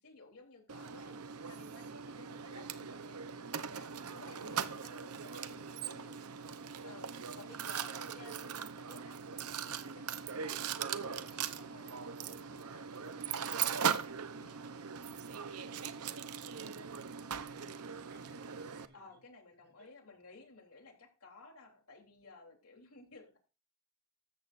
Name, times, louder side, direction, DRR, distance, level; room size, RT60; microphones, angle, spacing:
voice 1, 0.0-6.2 6.8-13.8 14.3-14.6 18.9-23.4, left 3 dB, 75° left, 2 dB, 3.5 m, -56 dB
Mechanisms, 0.7-18.9, right 7 dB, 80° right, 0.8 m, -40 dB
voice 2, 8.0-8.6 15.3-19.2 19.6-19.9, right 2 dB, 50° right, 1 dB, 7.0 m, -63 dB
14.0 x 13.5 x 2.6 m, 0.35 s
head